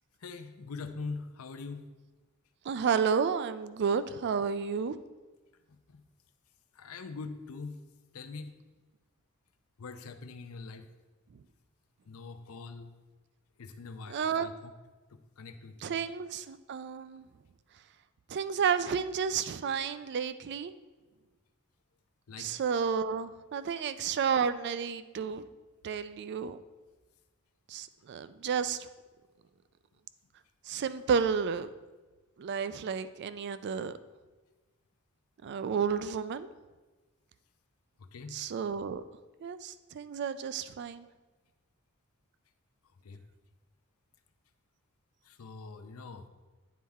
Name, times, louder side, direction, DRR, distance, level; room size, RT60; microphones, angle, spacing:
voice 1, 0.2-1.9 5.9-6.0 6.8-7.8 8.1-8.5 9.8-10.9 12.1-12.9 13.6-14.7 15.1-16.0 22.3-22.5 38.0-38.4 43.0-43.2 45.3-46.3, left 4 dB, 70° left, 8 dB, 0.5 m, -43 dB
voice 2, 2.7-5.0 14.1-14.5 15.8-17.3 18.3-20.7 22.4-25.5 25.8-26.6 27.7-28.9 30.7-31.7 32.4-33.9 35.4-36.5 38.3-39.0 39.4-41.0, right 6 dB, 50° right, 13 dB, 0.3 m, -31 dB
9.3 x 4.2 x 3.5 m, 1.2 s
head